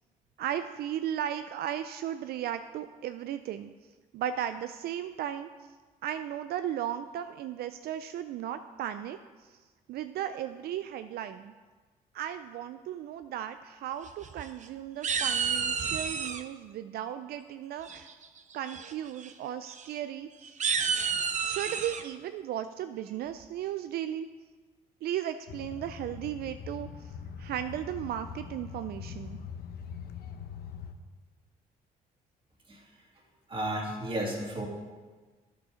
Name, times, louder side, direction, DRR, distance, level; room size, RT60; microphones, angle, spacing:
voice 1, 0.4-3.7 4.1-5.5 6.0-9.6 9.9-11.5 12.1-18.1 18.5-20.6 21.4-24.3 25.0-29.4, right 10 dB, 75° right, 10 dB, 0.4 m, -36 dB
sound 1, 14.1-14.7 15.0-16.4 17.9-18.3 18.7-18.9 19.2-19.3 19.7-19.8 20.4-22.0, right 6 dB, 50° right, 0.7 m, -30 dB
sound 2, 25.5-30.9, left 7 dB, 70° left, 0.8 m, -42 dB
voice 2, 33.5-34.7, right 1 dB, 30° right, -1 dB, 2.3 m, -33 dB
9.9 x 6.9 x 5.0 m, 1.4 s
cardioid pair, 85°, 16 cm